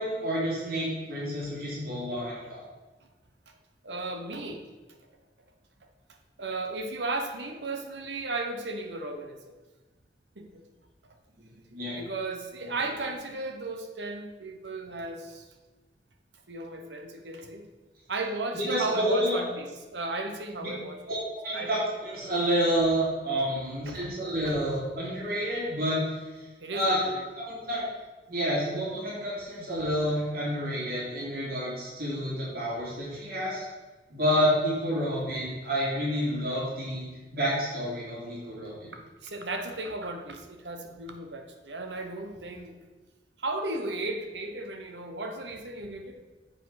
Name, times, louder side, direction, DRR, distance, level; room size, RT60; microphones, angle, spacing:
voice 1, 0.0-2.6 11.7-12.0 18.5-19.4 20.6-20.7 21.1-26.0 26.3-26.4 26.7-27.1 27.4-27.8 28.3-33.6 34.1-37.1 37.3-38.9, equal, 55° right, -6 dB, 2.9 m, -29 dB
voice 2, 3.8-4.6 6.4-9.5 10.4-10.6 11.9-15.5 16.5-17.6 18.1-21.0 21.5-21.7 23.8-24.1 24.4-24.6 26.6-27.3 39.2-42.8 43.4-46.2, right 2 dB, 85° right, 5 dB, 1.1 m, -35 dB
7.8 x 5.3 x 5.8 m, 1.2 s
head